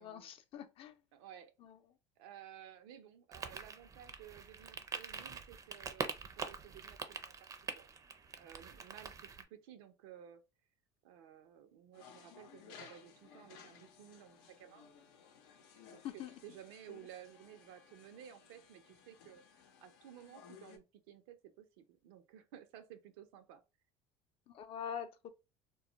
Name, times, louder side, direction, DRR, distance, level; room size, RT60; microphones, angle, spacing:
voice 1, 0.0-0.9 1.6-1.7 16.0-16.3 24.5-25.3, left 8 dB, 50° left, 0.5 m, -44 dB
voice 2, 1.1-1.5 2.2-7.5 7.8-7.9 8.3-10.4 11.0-14.9 15.9-23.6, right 10 dB, 85° right, 0.6 m, -55 dB
sound 1, 3.3-9.4, right 5 dB, 30° right, 0.5 m, -45 dB
sound 2, 11.9-20.8, left 7 dB, 90° left, 0.6 m, -59 dB
2.3 x 2.1 x 3.8 m
supercardioid pair, 115°, 12 cm